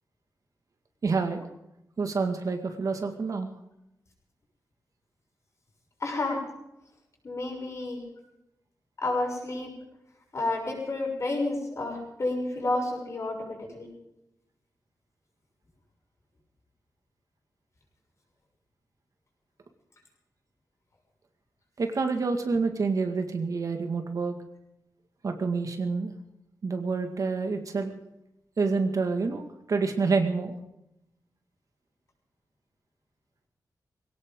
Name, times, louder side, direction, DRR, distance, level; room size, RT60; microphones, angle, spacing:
voice 1, 1.0-1.4 2.0-3.5 21.8-24.4 25.2-26.1 26.6-27.9 28.6-30.5, right 4 dB, 55° right, 5 dB, 2.0 m, -28 dB
voice 2, 6.0-6.4 7.2-8.0 9.0-9.7 10.3-13.9, left 2 dB, 45° left, 0 dB, 6.6 m, -30 dB
21.0 x 18.0 x 3.8 m, 0.86 s
wide cardioid pair, 150°, 7 cm